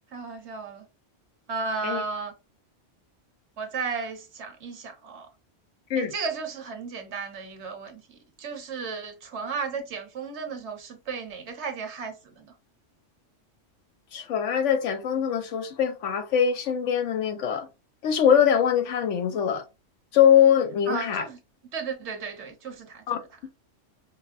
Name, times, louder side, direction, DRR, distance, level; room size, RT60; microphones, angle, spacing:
voice 1, 0.1-0.9 1.5-2.3 3.6-5.3 5.9-12.5 20.9-21.4 21.7-23.2, right 5 dB, 65° right, 1.1 m, -34 dB
voice 2, 14.1-17.7 18.0-19.6 20.1-21.2 23.1-23.2, left 8 dB, 75° left, 1.0 m, -22 dB
4.9 x 2.1 x 2.5 m
omnidirectional pair, 1.3 m